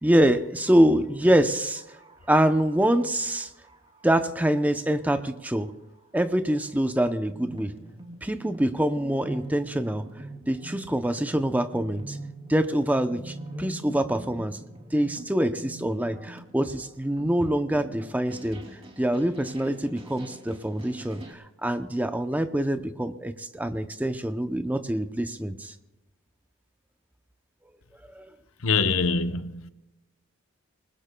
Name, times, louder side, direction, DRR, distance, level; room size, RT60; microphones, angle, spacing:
voice 1, 0.0-1.8 2.3-3.5 4.0-5.7 6.1-7.7 8.2-10.1 10.5-12.2 12.5-14.6 14.9-18.6 19.0-25.7 28.1-28.3, right 1 dB, 10° right, 0.6 m, -25 dB
sound 1, 1.8-6.3 7.0-7.1 7.3-21.3, right 1 dB, 30° right, 2.7 m, -44 dB
voice 2, 28.6-29.7, left 4 dB, 90° left, 0.9 m, -24 dB
28.0 x 20.0 x 2.2 m
head